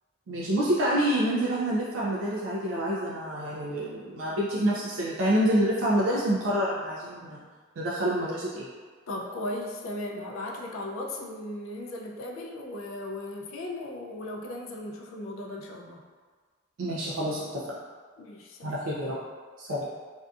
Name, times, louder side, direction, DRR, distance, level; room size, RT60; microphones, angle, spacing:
voice 1, 0.3-7.4 7.8-8.7 16.8-17.8 18.6-19.2 19.6-19.9, right 1 dB, 75° right, -6 dB, 0.4 m, -27 dB
voice 2, 9.1-16.0 18.2-18.8, left 1 dB, 80° left, 0 dB, 0.4 m, -37 dB
2.6 x 2.3 x 2.4 m, 1.5 s
head